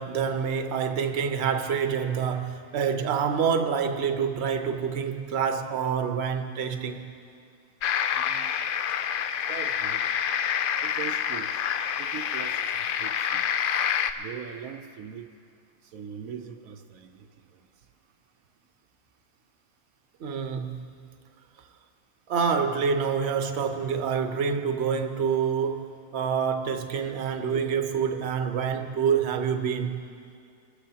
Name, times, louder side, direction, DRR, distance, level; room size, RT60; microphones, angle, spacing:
voice 1, 0.0-7.1 20.2-20.9 22.3-30.0, right 6 dB, 55° right, 6 dB, 1.0 m, -27 dB
sound 1, 7.8-14.1, left 8 dB, 80° left, 0.4 m, -27 dB
voice 2, 8.2-8.5 9.5-10.1 10.8-11.5 12.0-13.4 14.2-15.3 15.9-17.2, right 8 dB, 80° right, 5 dB, 1.1 m, -41 dB
23.0 x 13.0 x 2.8 m, 2.3 s
omnidirectional pair, 1.5 m